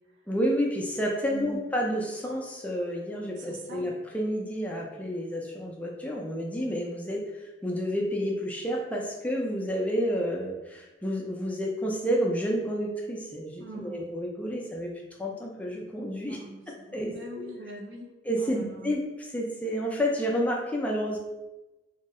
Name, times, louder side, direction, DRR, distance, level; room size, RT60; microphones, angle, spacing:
voice 1, 0.3-14.9 15.2-16.4 16.9-17.5 18.2-21.2, equal, 10° left, -2 dB, 0.3 m, -30 dB
voice 2, 1.3-1.6 3.3-3.9 13.6-14.1 16.3-18.1 18.4-18.9, right 1 dB, 70° right, 1 dB, 0.5 m, -42 dB
2.7 x 2.0 x 3.5 m, 1.0 s
head